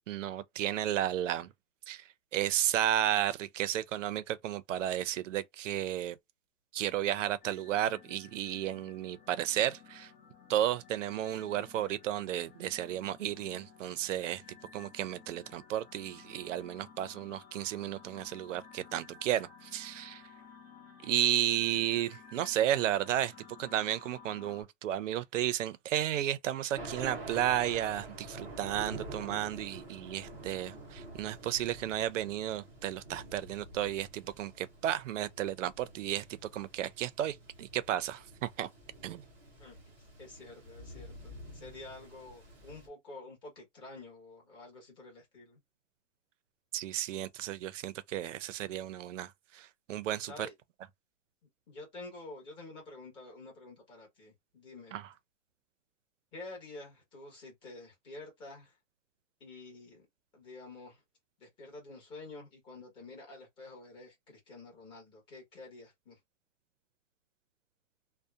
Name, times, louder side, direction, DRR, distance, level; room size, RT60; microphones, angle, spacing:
voice 1, 0.1-1.5 1.9-2.0 2.3-6.2 6.7-10.1 10.5-14.4 14.7-20.2 21.0-23.3 23.6-36.2 36.5-38.7 39.0-39.2 46.7-50.3 54.9-55.0, right 12 dB, 90° right, 0.6 m, -33 dB
sound 1, 7.4-24.6, left 6 dB, 50° left, 1.1 m, -55 dB
Thunder, 26.8-42.9, right 1 dB, 5° right, 0.4 m, -48 dB
voice 2, 40.2-45.6 50.2-50.5 51.7-55.0 56.3-58.8 59.4-60.0 60.3-61.0 61.4-66.2, left 2 dB, 15° left, 1.1 m, -49 dB
2.7 x 2.1 x 2.3 m
hypercardioid pair, 170°, 36 cm